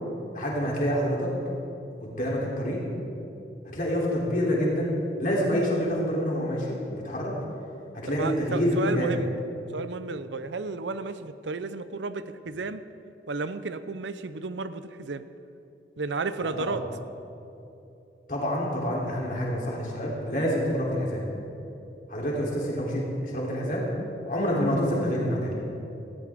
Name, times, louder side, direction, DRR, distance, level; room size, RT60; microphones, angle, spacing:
voice 1, 0.3-1.3 2.0-2.8 3.6-4.9 5.2-7.3 7.9-9.1 16.4-16.8 18.3-21.3 22.1-23.9 24.2-25.5, equal, 45° left, -4 dB, 3.3 m, -27 dB
voice 2, 8.1-9.3 9.7-12.8 13.3-15.3 16.0-16.8, right 4 dB, 85° right, 12 dB, 0.6 m, -33 dB
18.0 x 15.0 x 3.6 m, 2.8 s
head